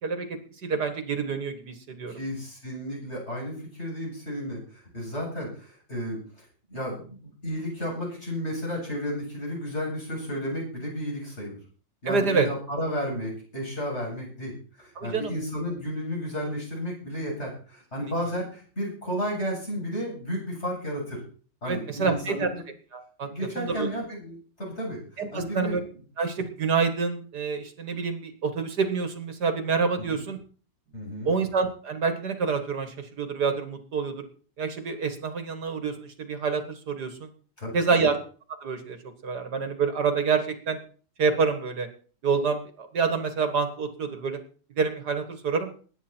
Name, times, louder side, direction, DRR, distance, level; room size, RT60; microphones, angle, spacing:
voice 1, 0.0-2.1 12.1-12.5 15.0-15.3 18.0-18.1 21.7-22.5 22.9-23.3 23.6-23.9 25.2-25.8 26.2-30.4 31.2-34.3 34.6-37.3 37.7-38.2 38.6-39.0 39.2-40.8 41.2-41.9 42.2-44.4 44.8-45.7, right 5 dB, 65° right, 8 dB, 2.2 m, -27 dB
voice 2, 2.1-6.4 6.7-11.6 12.0-14.5 14.8-21.2 21.6-22.6 23.2-25.0 25.3-25.7 30.0-30.2 30.9-31.3 37.6-38.1, equal, 35° left, -3 dB, 8.4 m, -33 dB
21.0 x 9.8 x 4.5 m, 0.42 s
omnidirectional pair, 1.9 m